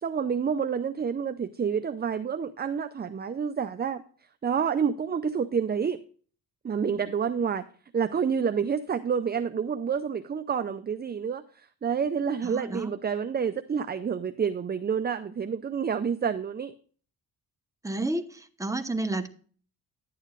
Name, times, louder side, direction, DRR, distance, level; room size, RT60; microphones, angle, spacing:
voice 1, 0.0-4.0 4.4-6.0 6.6-7.6 7.9-11.4 11.8-16.7, right 7 dB, 25° right, 9 dB, 0.5 m, -28 dB
voice 2, 12.4-12.9 17.8-19.3, right 2 dB, 10° right, 6 dB, 1.0 m, -31 dB
11.0 x 9.5 x 2.4 m, 0.42 s
cardioid pair, 90°, 39 cm